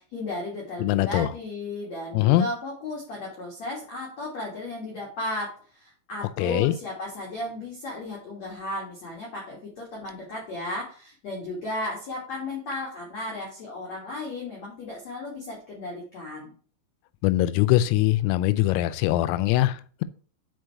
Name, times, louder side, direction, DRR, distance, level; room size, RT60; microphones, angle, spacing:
voice 1, 0.0-16.5, left 2 dB, 65° left, 1.7 m, -35 dB
voice 2, 0.8-1.3 2.1-2.5 6.4-6.7 17.2-20.0, left 15 dB, 85° left, 3.2 m, -22 dB
6.4 x 5.3 x 4.6 m
omnidirectional pair, 5.9 m